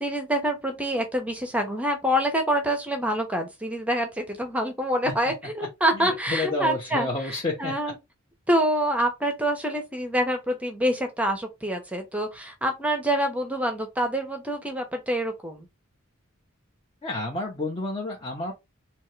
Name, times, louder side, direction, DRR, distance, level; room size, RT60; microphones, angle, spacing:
voice 1, 0.0-7.1 7.6-7.9 8.5-15.7, equal, 5° right, 0.7 m, -26 dB
voice 2, 5.9-7.9 17.0-18.5, left 2 dB, 25° left, 0.7 m, -30 dB
3.5 x 2.8 x 3.2 m
head